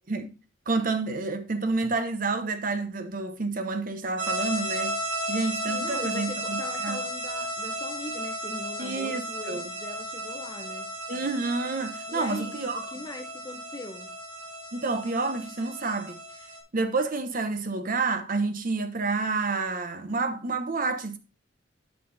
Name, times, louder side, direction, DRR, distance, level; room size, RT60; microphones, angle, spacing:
voice 1, 0.7-5.0 5.3-7.0 8.8-9.7 11.1-12.8 14.7-16.2 16.7-21.2, right 3 dB, 45° right, 0.9 m, -29 dB
sound 1, 4.2-16.6, right 1 dB, 80° right, 3.3 m, -34 dB
voice 2, 5.7-10.9 12.1-14.1, left 2 dB, 20° left, 0.8 m, -41 dB
8.3 x 5.7 x 4.0 m
head